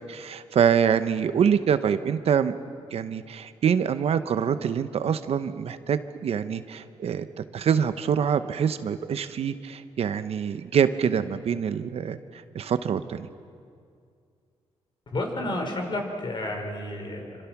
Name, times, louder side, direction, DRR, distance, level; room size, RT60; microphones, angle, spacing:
voice 1, 0.1-2.6 2.9-7.3 7.5-13.3, right 7 dB, 65° right, 11 dB, 1.0 m, -25 dB
voice 2, 15.1-17.4, left 1 dB, 45° left, 3 dB, 5.0 m, -31 dB
27.5 x 25.5 x 6.1 m, 2.3 s
cardioid pair, 105°, 11 cm